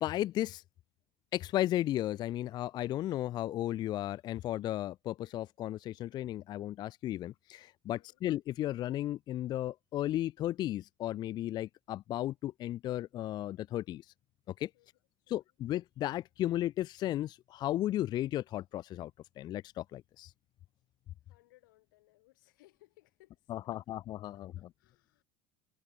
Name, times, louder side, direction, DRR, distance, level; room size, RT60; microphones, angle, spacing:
voice 1, 0.0-0.6 1.3-14.0 14.6-14.7 15.3-19.1 19.4-20.3 23.5-24.5, left 13 dB, 45° left, 0.3 m, -34 dB
voice 2, 14.7-15.5 21.3-23.8 24.3-25.2, left 19 dB, 90° left, 4.7 m, -66 dB
supercardioid pair, 105°, 10 cm